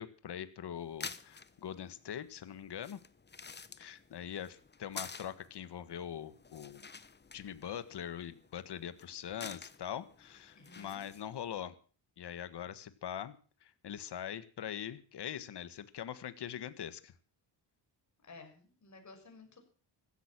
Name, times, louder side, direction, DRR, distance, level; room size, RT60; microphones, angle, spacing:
voice 1, 0.0-3.0 3.8-6.8 7.3-11.8 12.2-13.3 13.6-17.1, left 9 dB, 60° left, 13 dB, 1.7 m, -42 dB
sound 1, 0.8-11.5, left 5 dB, 25° left, 1.1 m, -51 dB
voice 2, 10.5-11.0 18.3-19.6, left 3 dB, 40° left, 4 dB, 6.4 m, -54 dB
15.5 x 13.5 x 6.2 m, 0.40 s
cardioid pair, 115°, 45 cm